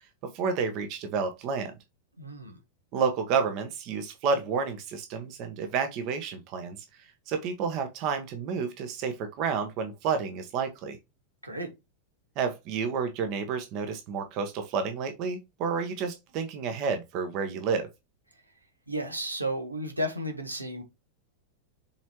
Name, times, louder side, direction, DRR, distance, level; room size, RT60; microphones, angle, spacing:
voice 1, 0.2-1.7 2.9-11.0 12.4-17.9, right 5 dB, 40° right, 1.3 m, -30 dB
voice 2, 2.2-2.6 11.4-11.7 18.9-20.8, equal, 85° right, 2.0 m, -33 dB
7.2 x 4.6 x 3.1 m
figure-of-eight pair, 90°, 0 cm